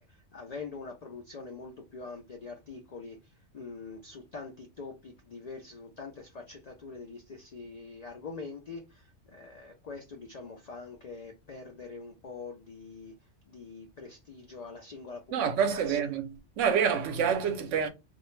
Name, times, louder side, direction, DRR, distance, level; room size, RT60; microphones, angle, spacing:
voice 1, 0.1-13.1 13.5-16.0, left 4 dB, 70° left, 0.3 m, -44 dB
voice 2, 15.3-17.9, right 7 dB, 80° right, 0.9 m, -27 dB
2.4 x 2.0 x 3.0 m
omnidirectional pair, 1.2 m